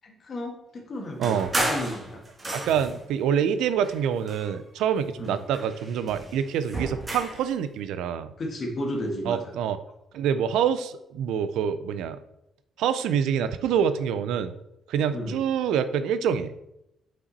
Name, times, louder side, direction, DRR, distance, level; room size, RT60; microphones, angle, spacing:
voice 1, 0.0-2.2 5.2-5.4 8.4-9.5 15.1-15.4, left 1 dB, 45° left, 1 dB, 1.7 m, -33 dB
sound 1, 1.2-3.1 3.8-4.9 5.2-7.5, right 1 dB, 25° right, 1.5 m, -33 dB
voice 2, 2.5-8.3 9.3-9.8 10.1-12.2 12.8-14.5 14.9-16.5, right 8 dB, 85° right, 12 dB, 0.4 m, -26 dB
5.6 x 5.3 x 4.1 m, 0.84 s
cardioid pair, 90°, 0 cm